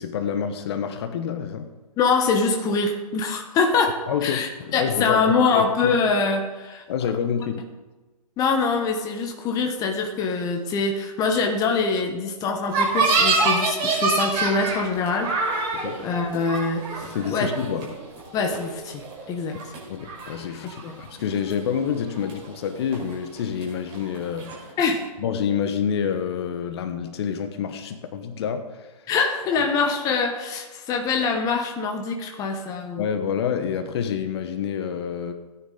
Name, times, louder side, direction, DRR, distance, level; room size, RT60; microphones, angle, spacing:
voice 1, 0.0-1.7 4.1-6.0 6.9-7.6 15.7-16.0 17.0-17.9 19.9-24.5 25.2-29.1 29.6-29.7 33.0-35.3, left 7 dB, 40° left, 8 dB, 1.2 m, -28 dB
voice 2, 2.0-6.8 8.4-15.7 16.0-17.0 17.3-17.5 18.3-19.6 20.8-21.0 24.8-25.1 29.1-33.1, left 4 dB, 15° left, 4 dB, 1.2 m, -24 dB
sound 1, 12.7-19.2 19.5-20.3 20.7-21.2 21.5-22.7 22.9-24.7, right 3 dB, 25° right, 4.9 m, -26 dB
17.5 x 9.8 x 4.0 m, 1.2 s
figure-of-eight pair, 135°, 21 cm